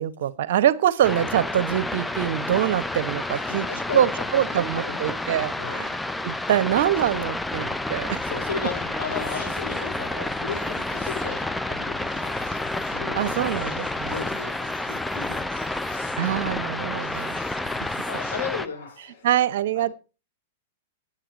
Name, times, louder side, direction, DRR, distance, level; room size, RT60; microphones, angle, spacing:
voice 1, 0.0-3.7 3.9-5.9 6.2-8.2 13.1-14.1 16.2-17.4 19.2-19.9, right 11 dB, 65° right, 16 dB, 1.0 m, -24 dB
sound 1, 1.0-18.7, left 2 dB, 5° left, 0.5 m, -30 dB
voice 2, 3.3-5.3 5.6-5.8 7.5-7.8 8.2-12.4 12.7-15.6 17.1-17.4 18.1-19.1 19.7-19.9, left 5 dB, 85° left, 7 dB, 4.0 m, -36 dB
sound 2, 7.9-19.4, left 5 dB, 60° left, 7.2 m, -48 dB
9.6 x 9.0 x 5.0 m, 0.32 s
hypercardioid pair, 125°, 0 cm